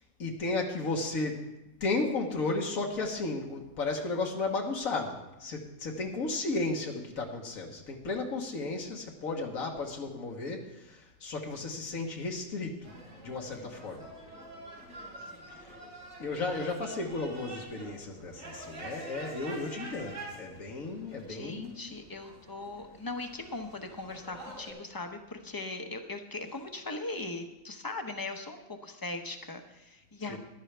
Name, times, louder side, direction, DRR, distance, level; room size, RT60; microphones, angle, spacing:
voice 1, 0.2-1.4 1.8-12.9 13.2-14.1 16.2-22.0 30.3-30.4, left 3 dB, 85° left, 1 dB, 1.7 m, -34 dB
sound 1, 12.8-24.7, right 1 dB, 70° right, 4.0 m, -47 dB
voice 2, 21.3-30.4, left 2 dB, 20° left, 6 dB, 0.6 m, -39 dB
14.5 x 11.5 x 3.4 m, 0.96 s
omnidirectional pair, 1.4 m